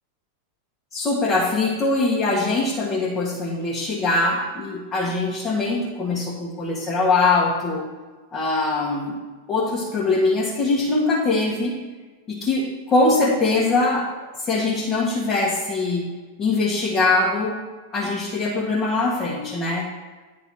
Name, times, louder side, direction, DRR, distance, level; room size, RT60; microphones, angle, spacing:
voice 1, 0.9-7.9 8.3-9.2 9.5-11.8 12.3-14.1 14.4-16.1 16.4-17.6 17.9-19.9, left 3 dB, 25° left, -5 dB, 1.6 m, -22 dB
9.6 x 3.9 x 6.1 m, 1.3 s
figure-of-eight pair, 90°, 0 cm